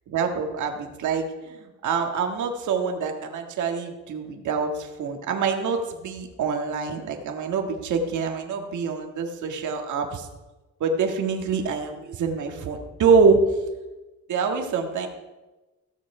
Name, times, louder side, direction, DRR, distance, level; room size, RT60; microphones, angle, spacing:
voice 1, 0.1-10.3 10.8-13.4 14.3-15.1, right 5 dB, 75° right, 3 dB, 1.8 m, -25 dB
16.0 x 7.1 x 4.9 m, 1.1 s
cardioid pair, 90°, 30 cm